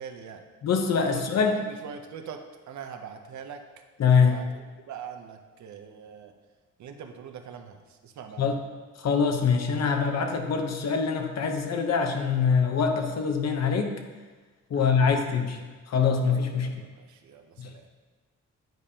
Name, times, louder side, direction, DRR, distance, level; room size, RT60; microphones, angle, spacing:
voice 1, 0.0-0.4 1.1-1.5 1.8-3.6 4.1-6.3 6.8-8.6 14.7-15.2 15.5-15.6 16.5-17.9, right 7 dB, 70° right, 6 dB, 0.7 m, -43 dB
voice 2, 0.6-1.6 4.0-4.4 8.4-8.6 9.0-13.9 14.7-15.6 15.9-16.7 17.6-17.7, left 5 dB, 60° left, 4 dB, 0.9 m, -24 dB
9.1 x 5.1 x 2.8 m, 1.3 s
cardioid pair, 110°, 30 cm